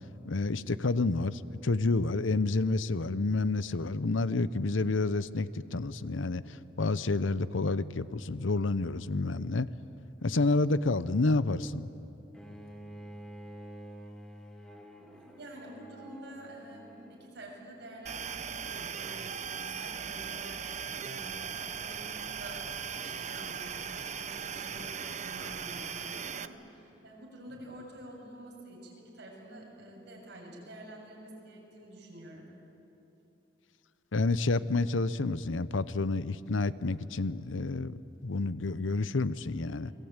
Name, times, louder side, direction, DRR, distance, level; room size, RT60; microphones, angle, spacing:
voice 1, 0.2-9.7 10.2-11.9 34.1-39.9, left 3 dB, 85° left, 15 dB, 0.8 m, -29 dB
Bowed string instrument, 12.3-17.4, equal, 5° left, 2.0 m, -48 dB
voice 2, 15.1-32.5 39.8-39.9, right 1 dB, 60° right, -1 dB, 7.2 m, -48 dB
sound 1, 18.1-26.5, right 7 dB, 40° right, 0.8 m, -38 dB
29.0 x 22.0 x 8.9 m, 3.0 s
head